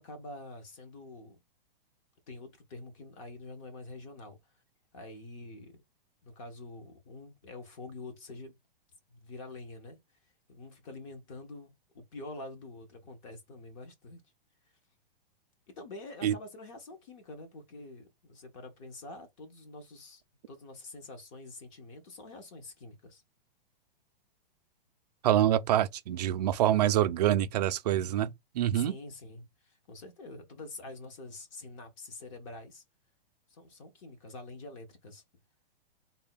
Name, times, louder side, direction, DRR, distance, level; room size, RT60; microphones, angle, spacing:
voice 1, 0.0-1.4 2.3-4.4 4.9-5.8 6.2-8.5 9.1-10.0 10.5-14.2 15.7-20.2 20.5-23.2 28.7-32.8 33.5-35.2, left 2 dB, 30° left, 0.9 m, -46 dB
voice 2, 25.2-28.9, right 11 dB, 45° right, 0.4 m, -26 dB
3.5 x 2.3 x 3.9 m
hypercardioid pair, 165°, 29 cm